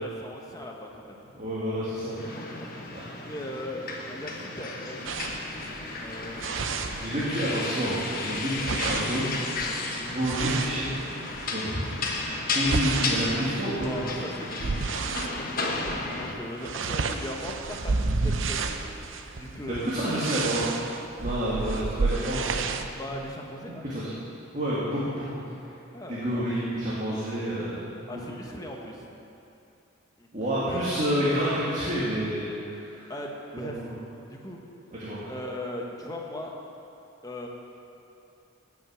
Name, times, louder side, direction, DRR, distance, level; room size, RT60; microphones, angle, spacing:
voice 1, 0.0-1.2 2.0-2.1 2.3-5.2 5.5-6.5 8.3-8.4 13.8-14.7 14.9-19.9 21.5-21.6 22.4-22.5 22.9-23.8 25.9-26.5 28.1-29.1 30.2-30.3 30.7-30.8 33.1-33.8 34.2-34.6 35.3-36.6 37.2-37.5, left 1 dB, 20° left, 0 dB, 1.2 m, -39 dB
voice 2, 1.3-2.6 2.9-3.0 7.0-9.4 10.0-10.9 11.5-14.0 19.7-20.7 21.2-22.6 23.1-23.2 23.9-24.1 24.5-25.4 26.1-28.2 30.3-33.1 33.5-33.9 34.9-35.2, equal, 35° right, -9 dB, 2.0 m, -29 dB
sound 1, 2.2-16.3, left 3 dB, 45° left, 1.2 m, -33 dB
sound 2, 5.1-7.6 7.9-11.5 12.0-15.4 15.8-16.1 16.3-22.9, right 4 dB, 70° right, 0.6 m, -31 dB
16.5 x 6.1 x 6.3 m, 2.8 s
head